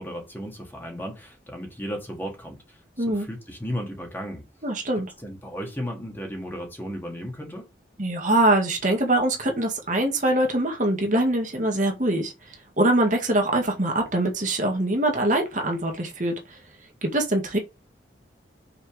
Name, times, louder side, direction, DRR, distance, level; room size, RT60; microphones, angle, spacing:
voice 1, 0.0-4.4 5.2-7.7, equal, 10° left, 2.0 m, -35 dB
voice 2, 4.6-5.1 8.0-12.3 12.8-16.6 17.0-17.6, right 1 dB, 45° right, 1.8 m, -23 dB
5.9 x 4.3 x 5.0 m
head